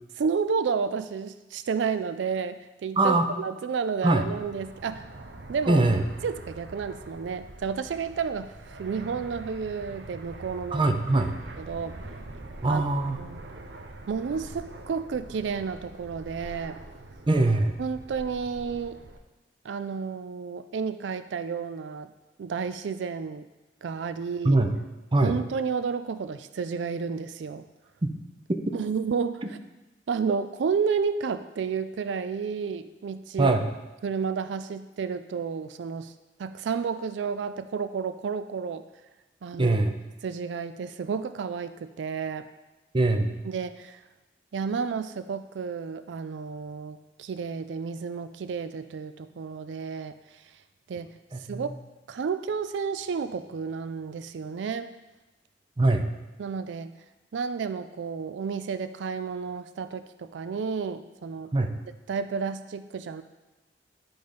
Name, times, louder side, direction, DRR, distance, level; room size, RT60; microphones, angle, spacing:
voice 1, 0.2-5.1 5.5-5.9 6.2-10.8 11.6-12.0 12.7-12.8 13.2-13.4 14.1-16.8 17.8-19.0 19.6-22.1 22.4-23.5 23.8-24.6 25.2-27.6 28.7-29.4 30.1-33.6 34.0-36.1 36.4-38.8 39.4-39.8 40.2-42.5 43.4-44.0 44.5-50.4 50.9-51.1 51.5-51.7 52.1-54.9 56.4-56.9 57.3-61.5 62.1-63.2, right 5 dB, 90° right, 11 dB, 0.4 m, -31 dB
Fixed-wing aircraft airplane, 4.1-19.2, right 2 dB, 75° right, 0.7 m, -44 dB
voice 2, 5.7-6.0 10.7-11.3 12.6-13.2 17.3-17.7 24.4-24.7 25.1-25.3 28.0-28.1 28.5-28.6 33.4-33.7 39.6-39.9 42.9-43.4 51.3-51.7 55.8-56.0 61.5-61.7, right 2 dB, 30° right, 5 dB, 0.6 m, -22 dB
10.5 x 4.0 x 5.1 m, 1.1 s
head